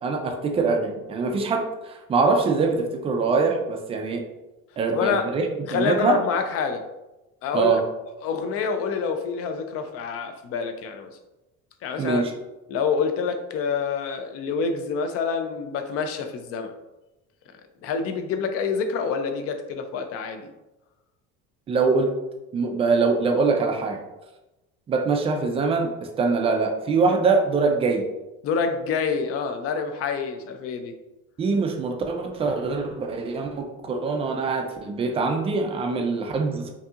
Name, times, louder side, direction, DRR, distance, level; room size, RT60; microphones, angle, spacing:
voice 1, 0.0-4.2 4.8-6.2 7.5-7.8 12.0-12.3 21.7-22.1 22.5-24.0 24.9-25.9 26.2-28.0 31.4-36.7, right 4 dB, 20° right, 3 dB, 0.3 m, -23 dB
voice 2, 4.9-5.3 5.7-6.8 7.4-7.8 8.2-11.1 11.8-12.2 12.7-16.7 17.8-20.5 28.4-30.9, left 5 dB, 50° left, 7 dB, 0.5 m, -27 dB
5.3 x 2.7 x 2.4 m, 1.0 s
cardioid pair, 170°, 31 cm